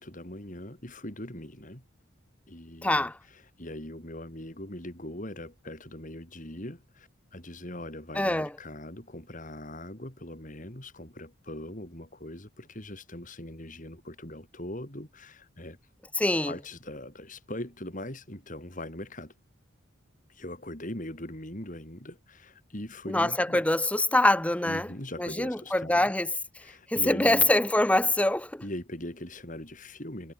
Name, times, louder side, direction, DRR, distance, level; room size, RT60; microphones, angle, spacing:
voice 1, 0.0-1.8 2.5-15.8 16.5-19.3 20.3-23.6 24.6-26.1 26.6-27.5 28.6-30.3, left 1 dB, 40° left, 4.4 m, -41 dB
voice 2, 2.8-3.2 8.2-8.5 16.2-16.5 23.1-24.9 25.2-26.3 26.9-28.6, left 1 dB, 5° left, 0.6 m, -24 dB
head